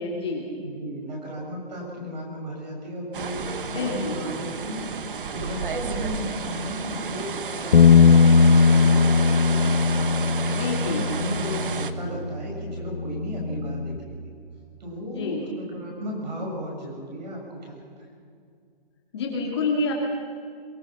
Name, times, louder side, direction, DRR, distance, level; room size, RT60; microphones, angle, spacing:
voice 1, 0.0-0.5 3.7-4.2 10.5-11.0 15.0-15.5 19.1-19.9, left 3 dB, 25° left, -1 dB, 2.6 m, -28 dB
voice 2, 0.6-4.8 5.3-10.2 10.7-14.2 14.8-18.2, equal, 45° right, -1 dB, 6.7 m, -35 dB
sound 1, 3.1-11.9, right 5 dB, 60° right, 1.3 m, -32 dB
Bass guitar, 7.7-14.0, left 5 dB, 85° left, 1.6 m, -19 dB
22.5 x 21.5 x 6.0 m, 2.3 s
hypercardioid pair, 175°, 29 cm